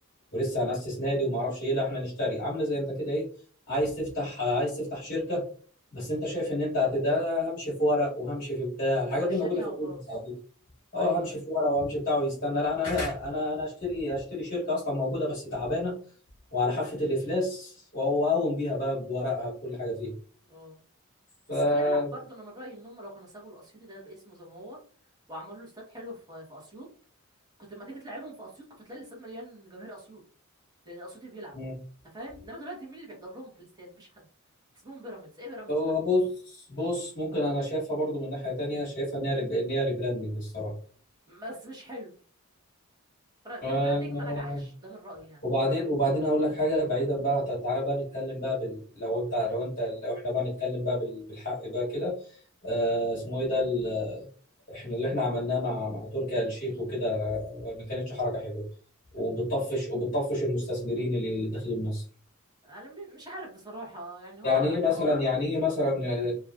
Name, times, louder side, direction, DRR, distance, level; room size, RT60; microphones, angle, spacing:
voice 1, 0.3-3.3 3.7-5.4 5.9-10.3 10.9-15.9 16.5-20.1 21.5-22.1 31.5-31.8 35.7-40.7 43.6-44.6 45.4-52.2 52.6-54.3 54.7-58.6 59.1-62.0 64.4-66.4, left 1 dB, 40° left, -6 dB, 1.0 m, -28 dB
voice 2, 9.2-10.0 11.0-11.4 20.4-20.8 21.6-24.8 25.3-26.9 27.7-30.2 30.8-31.6 32.0-34.2 34.8-35.9 41.3-42.1 43.4-45.4 62.6-64.8, right 1 dB, 20° right, -3 dB, 0.9 m, -43 dB
3.1 x 2.3 x 2.3 m, 0.43 s
head